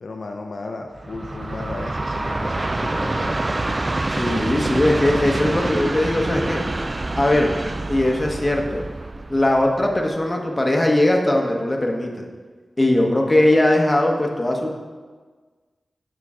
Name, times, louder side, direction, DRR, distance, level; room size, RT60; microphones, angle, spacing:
voice 1, 0.0-3.4, left 3 dB, 70° left, 3 dB, 0.4 m, -34 dB
Train, 0.9-10.2, right 2 dB, 35° right, 0.3 m, -26 dB
voice 2, 4.1-6.6 7.1-7.5 7.9-8.8 9.3-12.1 12.8-14.7, left 1 dB, 25° left, 1 dB, 1.1 m, -19 dB
6.6 x 5.9 x 3.7 m, 1.4 s
cardioid pair, 55°, 0 cm